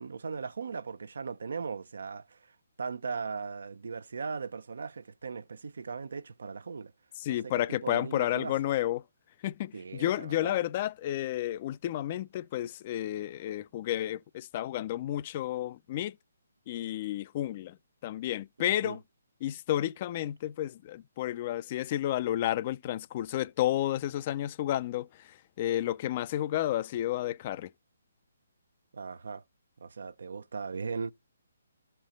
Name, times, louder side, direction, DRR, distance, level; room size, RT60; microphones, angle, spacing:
voice 1, 0.0-2.5 2.8-6.9 7.3-8.5 9.7-10.6 18.6-19.0 28.9-29.4 29.8-31.1, right 5 dB, 70° right, 0.7 m, -38 dB
voice 2, 7.2-9.0 9.4-16.1 16.7-17.8 18.0-19.0 19.4-25.1 25.6-27.7, left 13 dB, 35° left, 0.4 m, -31 dB
13.0 x 4.5 x 5.1 m
hypercardioid pair, 145°, 0 cm